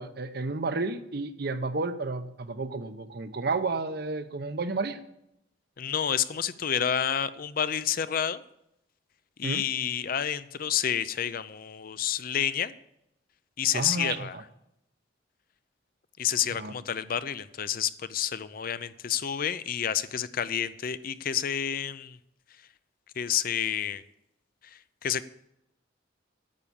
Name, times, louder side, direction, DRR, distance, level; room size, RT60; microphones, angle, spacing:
voice 1, 0.0-5.0 9.4-9.6 13.7-14.4 16.6-16.7, right 3 dB, 60° right, 0.8 m, -31 dB
voice 2, 5.8-8.4 9.4-12.7 13.6-14.4 16.2-22.2 23.2-24.0 24.6-25.3, left 9 dB, 50° left, 0.5 m, -29 dB
10.5 x 8.5 x 7.0 m
head